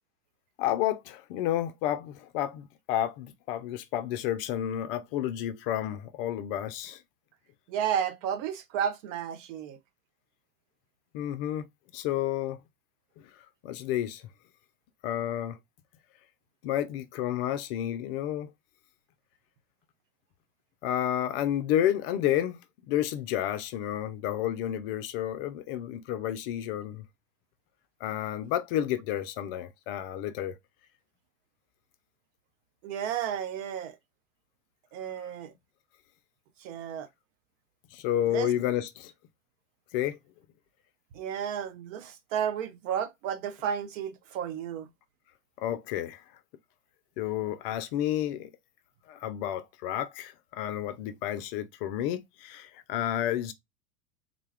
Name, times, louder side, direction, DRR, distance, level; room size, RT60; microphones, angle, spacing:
voice 1, 0.6-7.0 11.1-11.7 11.9-12.6 13.6-14.2 15.0-15.6 16.6-18.5 20.8-22.6 22.9-27.0 28.0-30.6 37.9-39.1 39.9-40.2 45.6-46.2 47.2-48.5 49.1-53.5, left 11 dB, 40° left, 0.4 m, -30 dB
voice 2, 7.7-9.8 32.8-34.0 34.9-35.5 36.6-37.1 38.3-38.5 41.1-44.9, right 9 dB, 55° right, 0.8 m, -32 dB
3.7 x 2.3 x 3.2 m
hypercardioid pair, 100°, 45 cm